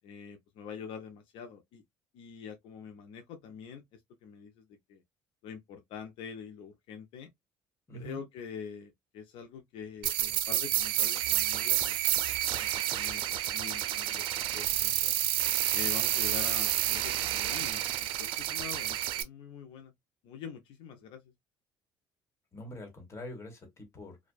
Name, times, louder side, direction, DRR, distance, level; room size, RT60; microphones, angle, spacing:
voice 1, 0.0-1.8 2.1-5.0 5.4-7.3 7.9-12.0 12.6-13.2 13.5-14.3 14.5-15.1 15.7-19.9 20.2-21.3, left 6 dB, 75° left, 0.5 m, -45 dB
voice 2, 7.9-8.2 22.5-24.2, equal, 30° left, 1.3 m, -44 dB
sound 1, 10.0-19.2, right 12 dB, 75° right, 0.4 m, -29 dB
2.5 x 2.2 x 2.3 m
cardioid pair, 100°, 9 cm